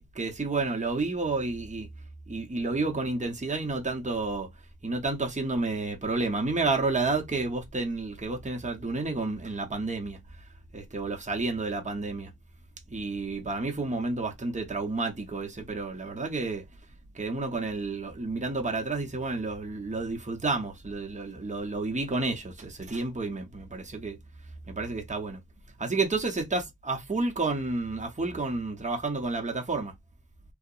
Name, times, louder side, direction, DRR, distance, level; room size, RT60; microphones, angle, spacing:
voice 1, 0.0-1.9 2.3-4.5 4.8-10.2 10.7-12.3 12.9-16.6 17.1-24.2 24.7-25.4 25.8-29.9, right 3 dB, 20° right, 0.7 m, -30 dB
2.7 x 2.0 x 2.3 m
wide cardioid pair, 45°, 38 cm